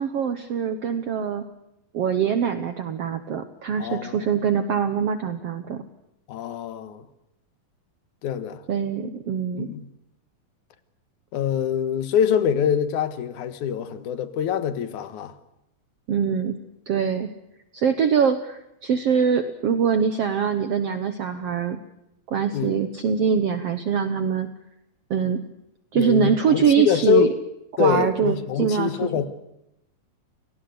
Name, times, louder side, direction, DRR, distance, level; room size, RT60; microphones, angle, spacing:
voice 1, 0.0-1.4 1.9-5.8 8.7-9.7 16.1-16.6 16.9-17.3 17.7-21.8 22.3-24.5 25.1-25.4 25.9-27.3 27.8-28.9, right 7 dB, 60° right, 1.7 m, -23 dB
voice 2, 3.8-4.3 6.3-7.1 8.2-8.6 9.6-9.9 11.3-15.3 22.5-22.7 25.9-27.4 27.8-29.3, left 8 dB, 65° left, 2.8 m, -24 dB
28.5 x 19.0 x 7.9 m
omnidirectional pair, 4.0 m